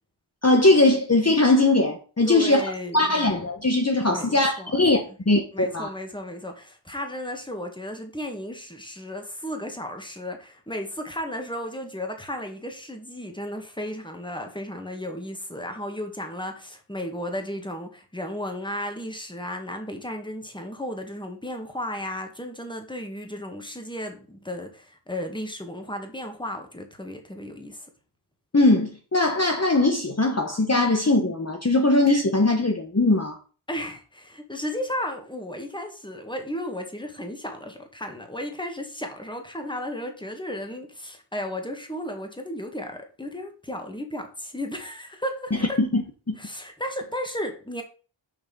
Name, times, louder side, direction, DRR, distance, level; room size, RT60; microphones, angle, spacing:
voice 1, 0.4-2.6 2.9-5.9 28.5-33.4 45.8-46.0 46.3-46.4, left 2 dB, 30° left, 1.2 m, -20 dB
voice 2, 2.2-3.1 4.1-4.8 5.1-5.2 5.5-27.9 33.7-45.8 46.4-47.8, left 1 dB, 10° left, 1.8 m, -34 dB
6.6 x 5.7 x 5.5 m
wide cardioid pair, 60°, 49 cm